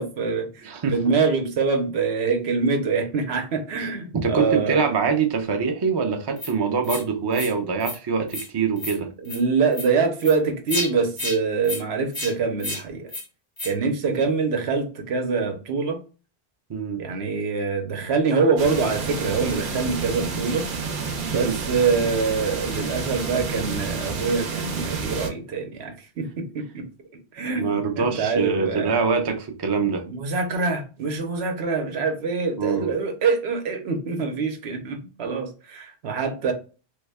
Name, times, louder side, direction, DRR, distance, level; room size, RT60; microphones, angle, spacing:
voice 1, 0.0-4.9 9.2-13.1 13.6-16.0 17.0-20.7 21.2-26.8 27.3-28.9 30.1-36.5, right 4 dB, 85° right, 1.0 m, -25 dB
voice 2, 0.6-1.0 4.1-9.1 14.1-14.2 16.7-17.0 21.3-21.5 27.5-30.0 32.6-32.9, right 5 dB, 35° right, 0.4 m, -24 dB
sound 1, 6.4-6.5 6.8-7.0 7.3-7.5 7.8-8.0 8.3-8.5 8.8-9.0 9.3-9.4 9.7-9.9 10.2-10.4 10.7-10.9 11.2-11.4 11.6-11.8 12.1-12.3 12.6-12.8 13.1-13.2 13.6-13.7, left 2 dB, 25° left, 0.5 m, -30 dB
sound 2, 18.6-25.3, right 5 dB, 55° right, 0.8 m, -30 dB
3.3 x 2.2 x 3.4 m
omnidirectional pair, 1.1 m